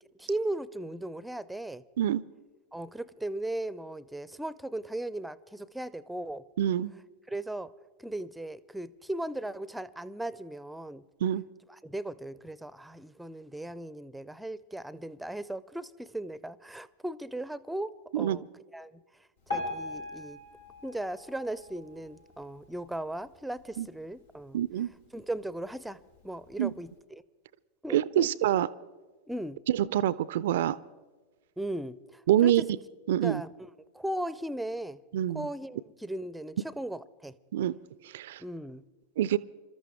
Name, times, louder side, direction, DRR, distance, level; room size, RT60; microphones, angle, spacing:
voice 1, 0.2-1.8 2.7-6.4 7.3-7.7 8.0-11.0 11.8-18.5 18.7-18.9 19.5-20.4 20.8-24.6 25.1-27.2 27.8-28.3 29.3-29.6 31.6-32.6 33.2-33.5 33.9-35.0 35.3-37.4 38.4-38.8, right 1 dB, 5° right, 0.5 m, -37 dB
voice 2, 6.6-6.9 11.2-11.4 18.1-18.4 23.8-23.9 24.5-24.9 26.6-26.7 27.9-28.7 29.7-30.8 32.3-32.7 33.1-33.4 35.1-35.5 37.5-37.8 38.1-38.4 39.2-39.4, right 12 dB, 55° right, 0.4 m, -26 dB
Piano, 19.5-22.6 23.1-23.3 23.6-23.7 24.4-24.5 25.1-25.2, left 2 dB, 80° left, 4.3 m, -39 dB
26.0 x 13.5 x 3.5 m
figure-of-eight pair, 90°, 0 cm